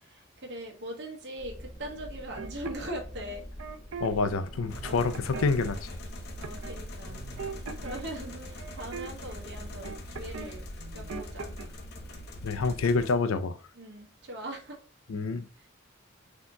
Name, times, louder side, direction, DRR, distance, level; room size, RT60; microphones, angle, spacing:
voice 1, 0.0-3.4 4.8-5.2 6.4-7.2 7.8-10.7 10.9-11.5 13.7-14.8 15.6-15.7, right 1 dB, 55° right, 1.1 m, -41 dB
sound 1, 1.4-12.9, equal, 10° left, 0.7 m, -44 dB
sound 2, 2.3-4.1 4.5-5.8 6.4-6.8 7.1-10.5 10.8-11.6, right 5 dB, 90° right, 0.6 m, -41 dB
voice 2, 4.0-5.9 12.4-13.6 15.1-15.4, left 4 dB, 85° left, 0.5 m, -27 dB
sound 3, 4.7-13.2, left 1 dB, 50° left, 0.7 m, -44 dB
4.2 x 2.9 x 3.7 m
head